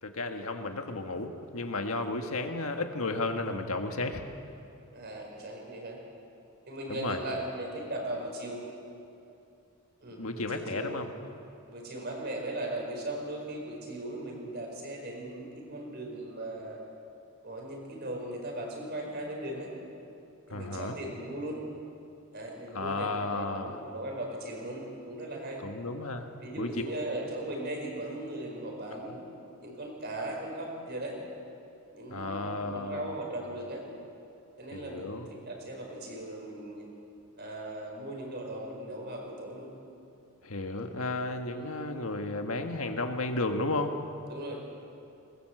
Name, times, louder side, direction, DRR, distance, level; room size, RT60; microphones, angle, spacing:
voice 1, 0.0-4.2 6.9-7.2 10.2-11.1 20.5-20.9 22.7-23.8 25.6-26.3 26.6-26.7 32.1-33.1 34.7-35.3 40.4-44.0, left 2 dB, 75° left, 5 dB, 1.6 m, -33 dB
voice 2, 4.9-6.0 6.7-8.6 10.0-10.9 11.7-16.8 17.4-19.7 20.5-21.6 22.3-25.6 26.4-29.2 29.6-31.1 31.9-33.8 34.6-36.9 37.4-39.7 41.5-41.7 44.3-44.6, right 1 dB, 45° right, 0 dB, 5.1 m, -38 dB
20.5 x 20.0 x 7.9 m, 2.6 s
head